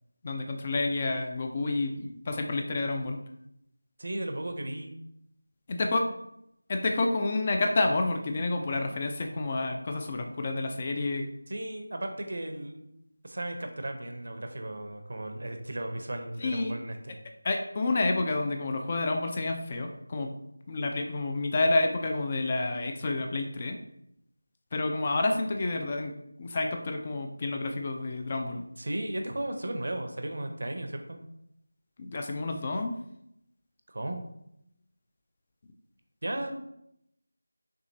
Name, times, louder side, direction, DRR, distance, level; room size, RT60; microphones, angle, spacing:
voice 1, 0.2-3.2 5.7-6.1 6.7-11.2 16.4-16.8 17.4-20.3 20.7-23.8 24.7-26.1 26.4-28.6 32.0-33.0, left 2 dB, 30° left, 4 dB, 0.4 m, -29 dB
voice 2, 4.0-4.9 11.5-12.9 13.2-17.2 28.8-31.2 33.9-34.2 36.2-36.7, right 1 dB, 60° right, 5 dB, 0.7 m, -35 dB
6.2 x 2.8 x 2.7 m, 0.78 s
figure-of-eight pair, 170°, 0 cm